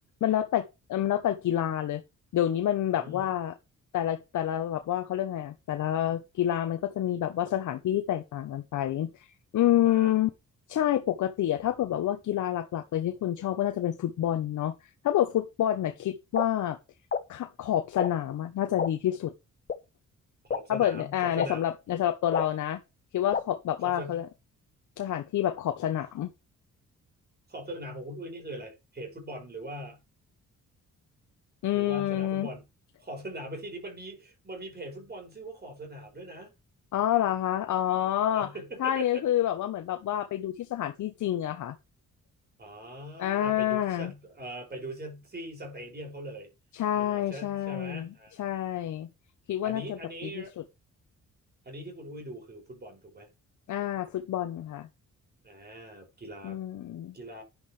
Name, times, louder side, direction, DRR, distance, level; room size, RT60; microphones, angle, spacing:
voice 1, 0.2-2.0 2.3-3.6 3.9-10.3 10.7-16.8 17.3-19.3 20.7-22.8 23.1-24.3 25.0-26.3 31.6-32.5 36.9-38.5 38.8-41.8 43.2-44.1 46.7-49.1 49.5-50.4 53.7-54.9 56.4-57.2, left 12 dB, 70° left, 0.9 m, -28 dB
voice 2, 2.9-3.3 9.8-10.1 20.4-21.6 23.8-24.2 27.5-30.0 31.7-32.6 33.0-36.5 38.3-39.2 42.6-46.5 47.0-48.6 49.6-50.5 51.6-53.3 55.4-56.6 57.1-57.4, right 1 dB, 30° right, 6.0 m, -41 dB
sound 1, 16.3-16.4 17.1-17.2 18.0-18.1 18.8-18.9 19.7-19.8 20.5-20.6 21.4-21.5 22.3-22.4 23.3-23.4, left 6 dB, 30° left, 1.1 m, -28 dB
10.5 x 9.9 x 3.2 m
cardioid pair, 115°, 31 cm